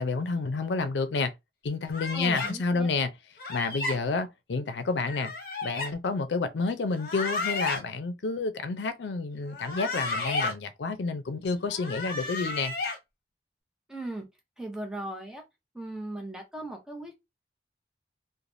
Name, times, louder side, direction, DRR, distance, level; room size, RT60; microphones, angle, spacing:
voice 1, 0.0-1.3 1.6-3.1 3.5-5.3 5.6-12.7, left 4 dB, 85° left, 0.5 m, -29 dB
sound 1, 1.9-2.5 3.4-4.0 5.1-5.9 6.9-7.8 9.5-10.5 11.7-13.0, left 3 dB, 55° left, 0.8 m, -32 dB
voice 2, 2.1-2.9 13.9-14.2 14.6-15.4 15.7-17.2, right 1 dB, 5° right, 0.7 m, -38 dB
3.2 x 2.1 x 2.5 m
head